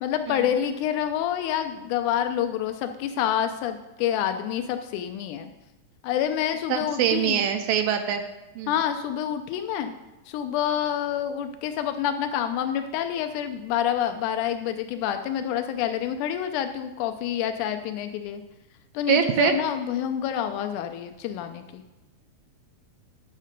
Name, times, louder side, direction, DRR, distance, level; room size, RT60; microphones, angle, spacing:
voice 1, 0.0-5.5 6.0-7.4 8.7-9.9 10.3-18.4 18.9-21.8, left 10 dB, 90° left, 7 dB, 1.7 m, -27 dB
voice 2, 6.7-8.2 8.6-8.7 19.1-19.5, right 9 dB, 80° right, 6 dB, 2.2 m, -23 dB
9.5 x 6.5 x 5.1 m, 1.0 s
omnidirectional pair, 4.1 m